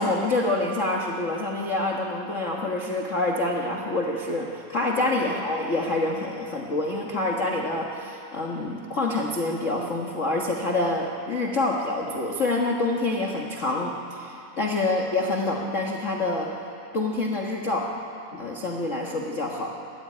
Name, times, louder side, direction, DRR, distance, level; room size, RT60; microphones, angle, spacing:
voice 1, 0.0-16.5 16.9-17.9 18.3-19.7, left 2 dB, 45° left, -1 dB, 1.0 m, -27 dB
21.5 x 15.5 x 9.9 m, 2.9 s
omnidirectional pair, 3.6 m